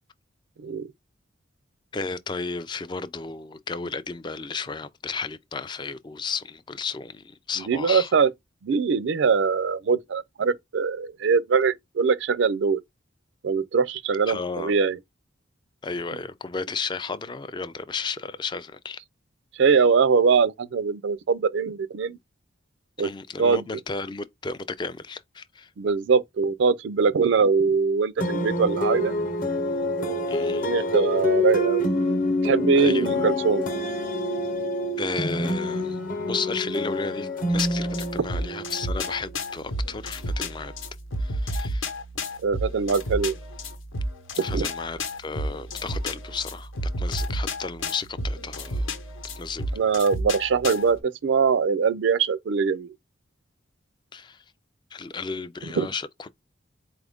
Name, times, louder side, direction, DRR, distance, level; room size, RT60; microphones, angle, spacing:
voice 1, 1.9-8.1 14.3-14.7 15.8-19.0 23.0-25.7 30.3-30.7 32.8-33.3 35.0-36.0 36.3-40.7 41.2-41.9 44.4-46.7 47.0-48.9 49.4-49.7 54.1-54.4 54.9-56.3, left 4 dB, 25° left, 0.3 m, -33 dB
voice 2, 7.7-8.3 8.6-12.8 13.4-15.0 19.6-22.2 23.0-23.1 23.4-23.6 25.8-29.1 30.0-31.9 32.4-33.6 42.4-43.4 44.5-44.7 49.7-52.9 55.8-55.9, right 5 dB, 65° right, 0.4 m, -22 dB
sound 1, 28.2-39.4, left 1 dB, 45° left, 0.9 m, -27 dB
sound 2, 37.5-51.0, left 1 dB, 80° left, 0.9 m, -32 dB
4.2 x 2.4 x 3.4 m
head